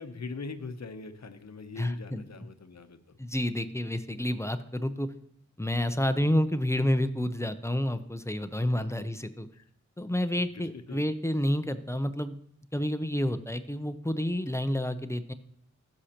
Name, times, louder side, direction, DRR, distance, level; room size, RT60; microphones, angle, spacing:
voice 1, 0.0-3.2 6.2-6.4 8.8-8.9 9.5-9.7 10.5-11.0 13.3-13.4, left 4 dB, 60° left, 8 dB, 0.8 m, -42 dB
voice 2, 1.8-2.3 3.2-5.1 5.6-9.5 10.0-12.4 12.7-15.3, left 1 dB, 10° left, 11 dB, 0.5 m, -29 dB
15.0 x 6.4 x 2.9 m, 0.74 s
wide cardioid pair, 75°, 30 cm